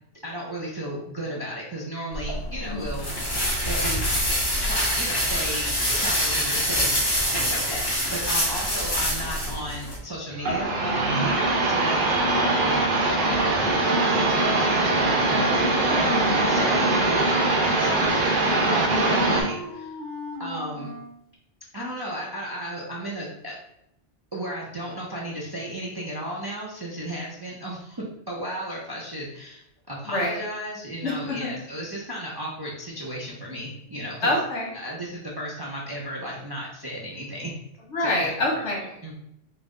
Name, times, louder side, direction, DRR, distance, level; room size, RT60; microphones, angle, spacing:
voice 1, 0.2-3.2 3.7-4.1 4.6-7.0 7.3-17.5 17.8-19.9 20.4-20.9 21.7-23.5 24.3-34.3 34.7-37.5 38.0-38.3 39.0-39.1, equal, 35° right, -4 dB, 0.4 m, -34 dB
sound 1, 2.1-10.0, equal, 60° left, 1.2 m, -25 dB
sound 2, 10.3-19.4, right 2 dB, 55° right, 0.8 m, -22 dB
Wind instrument woodwind instrument, 15.2-17.3 17.7-18.7 19.0-21.2, left 1 dB, 30° left, 1.4 m, -38 dB
voice 2, 16.1-16.4 30.0-30.4 31.0-31.5 34.2-34.7 37.9-38.9, left 1 dB, 80° left, -2 dB, 1.4 m, -26 dB
3.9 x 2.0 x 3.6 m, 0.80 s
omnidirectional pair, 1.2 m